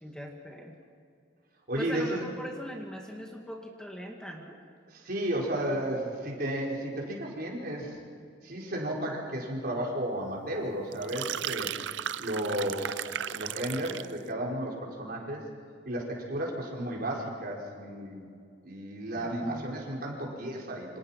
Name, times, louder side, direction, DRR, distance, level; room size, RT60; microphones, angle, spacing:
voice 1, 0.0-0.8 1.8-4.6 19.2-19.7, equal, 5° left, 1 dB, 2.1 m, -41 dB
voice 2, 1.7-2.2 4.9-8.0 8.4-11.8 12.2-15.5 15.9-18.3 18.6-21.0, right 1 dB, 55° right, -2 dB, 5.1 m, -33 dB
Coffee Pour, 10.9-14.2, right 10 dB, 75° right, 0.5 m, -35 dB
28.0 x 26.0 x 5.9 m, 2.3 s
head